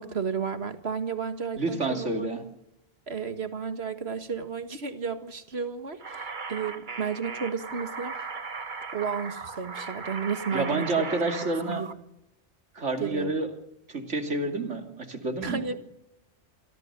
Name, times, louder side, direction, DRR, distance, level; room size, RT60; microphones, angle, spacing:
voice 1, 0.0-2.3 3.1-8.2 8.9-11.0 11.6-11.9 13.0-13.3 15.4-15.8, right 6 dB, 65° right, 9 dB, 2.0 m, -32 dB
voice 2, 1.6-2.4 10.5-11.8 12.7-13.5 13.9-15.6, right 2 dB, 85° right, 5 dB, 3.0 m, -29 dB
sound 1, 6.0-11.9, right 4 dB, 45° right, 1.4 m, -38 dB
27.5 x 19.5 x 6.8 m, 0.84 s
omnidirectional pair, 1.2 m